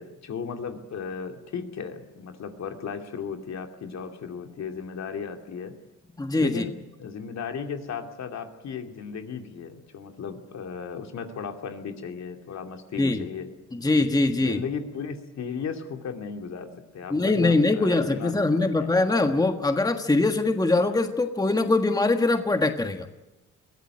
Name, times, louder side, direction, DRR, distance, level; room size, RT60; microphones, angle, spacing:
voice 1, 0.0-5.7 6.4-6.7 7.0-13.5 14.4-19.0, left 6 dB, 60° left, 5 dB, 2.6 m, -35 dB
voice 2, 6.2-6.6 13.0-13.2 13.7-14.6 17.1-23.1, left 2 dB, 10° left, 6 dB, 1.5 m, -22 dB
22.0 x 15.5 x 9.7 m, 1.0 s
cardioid pair, 90°, 30 cm